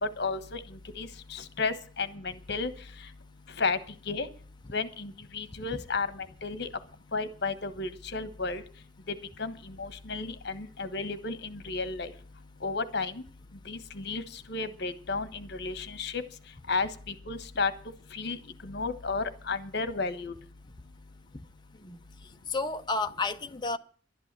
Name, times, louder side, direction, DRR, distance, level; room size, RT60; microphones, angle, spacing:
voice 1, 0.0-2.7 3.6-3.8 4.1-4.3 4.7-6.7 7.1-8.6 9.1-12.1 12.6-13.2 13.6-16.2 16.7-17.7 18.1-20.3, left 4 dB, 60° left, 1.3 m, -33 dB
voice 2, 22.5-23.8, left 3 dB, 25° left, 0.7 m, -31 dB
12.0 x 11.0 x 7.5 m
head